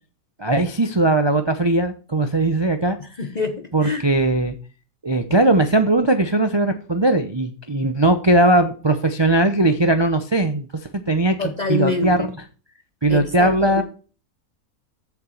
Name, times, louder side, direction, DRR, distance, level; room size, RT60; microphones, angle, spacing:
voice 1, 0.4-3.0 3.7-4.5 5.0-10.7 11.1-11.4 11.7-12.2 13.0-13.8, right 2 dB, 30° right, 0.5 m, -19 dB
voice 2, 3.2-4.0 11.4-12.3 13.1-13.8, left 3 dB, 35° left, 0.7 m, -25 dB
8.2 x 6.9 x 4.5 m
omnidirectional pair, 1.6 m